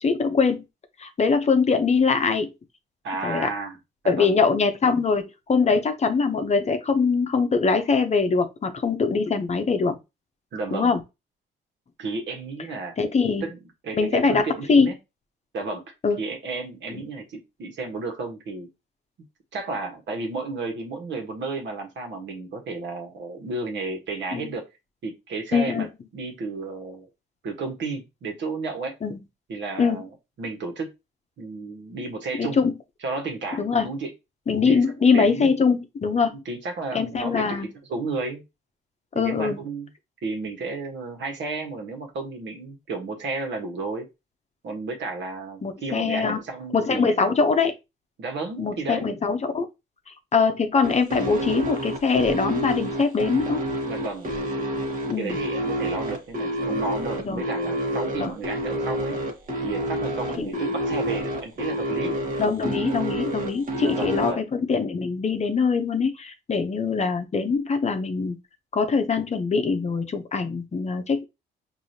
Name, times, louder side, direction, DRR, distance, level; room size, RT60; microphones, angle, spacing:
voice 1, 0.0-0.6 1.0-2.5 3.2-3.5 4.0-10.0 10.7-11.0 13.0-13.5 13.9-14.9 16.0-16.2 16.9-17.0 24.3-24.5 25.5-25.9 29.0-29.2 29.8-30.0 32.4-32.7 33.6-33.9 34.5-36.4 36.9-37.7 39.1-39.6 45.6-46.4 46.7-47.7 48.6-49.7 50.1-53.6 55.1-55.4 57.2-57.4 58.2-58.3 60.4-60.6 62.4-68.4 68.7-71.3, left 5 dB, 35° left, 0.7 m, -23 dB
voice 2, 3.0-3.8 4.0-4.4 10.5-10.9 12.0-13.0 13.4-13.6 13.8-15.0 15.5-15.8 16.2-18.7 19.5-24.7 25.0-25.9 26.1-27.1 27.4-29.0 29.5-30.1 30.4-30.9 31.4-32.6 33.0-34.1 34.7-34.8 35.1-35.5 36.4-38.4 39.1-39.9 40.2-44.1 44.6-47.3 48.2-49.2 53.8-54.3 55.2-59.2 59.6-62.2 63.8-64.4, right 3 dB, 65° right, 1.3 m, -32 dB
sound 1, 50.8-64.3, equal, 45° right, 1.3 m, -28 dB
4.8 x 2.7 x 2.8 m
cardioid pair, 90°, 20 cm